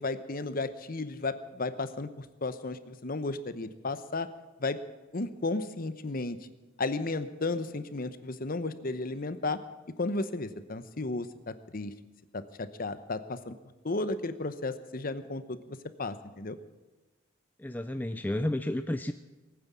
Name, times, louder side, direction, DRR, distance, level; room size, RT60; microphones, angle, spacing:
voice 1, 0.0-4.3 4.6-4.8 5.1-6.4 6.8-9.6 10.0-11.9 12.3-13.6 13.8-16.6, left 3 dB, 45° left, 12 dB, 0.8 m, -34 dB
voice 2, 17.6-19.1, left 1 dB, 10° left, 9 dB, 0.4 m, -31 dB
19.5 x 9.5 x 7.3 m, 1.1 s
head